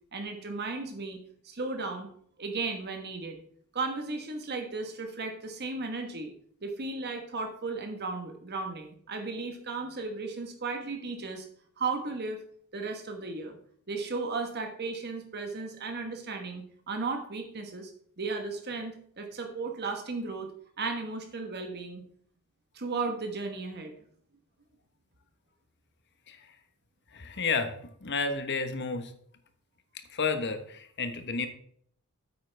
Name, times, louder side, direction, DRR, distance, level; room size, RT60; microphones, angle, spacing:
voice 1, 0.1-1.2 1.4-2.1 2.4-3.4 3.7-6.3 6.6-11.5 11.8-12.4 12.7-13.6 13.9-17.9 18.2-20.5 20.8-22.0 22.7-23.9, right 3 dB, 50° right, 4 dB, 1.3 m, -35 dB
voice 2, 27.1-27.7 28.0-29.1 30.1-31.5, left 4 dB, 55° left, 8 dB, 1.2 m, -31 dB
9.4 x 8.5 x 3.4 m, 0.62 s
head